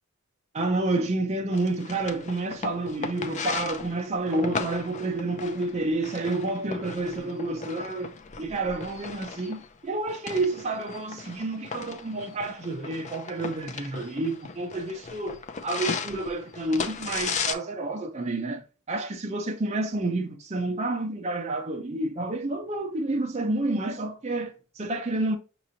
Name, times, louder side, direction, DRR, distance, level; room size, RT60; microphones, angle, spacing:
voice 1, 0.5-8.1 8.4-25.4, right 2 dB, 30° right, 0.6 m, -29 dB
sound 1, 1.5-17.5, left 5 dB, 35° left, 0.5 m, -36 dB
5.9 x 3.0 x 2.6 m
head